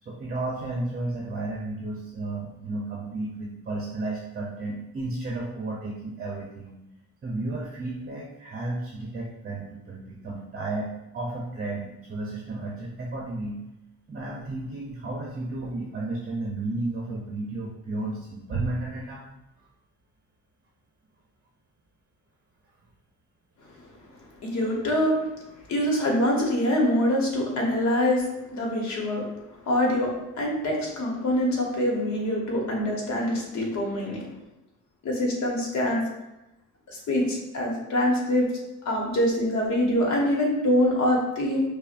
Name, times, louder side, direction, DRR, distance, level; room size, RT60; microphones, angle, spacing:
voice 1, 0.0-6.8 7.2-13.6 14.1-19.2, right 2 dB, 30° right, -2 dB, 0.7 m, -33 dB
voice 2, 24.4-25.2 25.7-28.3 28.5-29.2 29.7-34.3 35.0-36.0 36.9-38.5 38.8-41.7, left 1 dB, 65° left, -1 dB, 1.1 m, -24 dB
5.4 x 2.1 x 2.5 m, 0.91 s
cardioid pair, 95°, 30 cm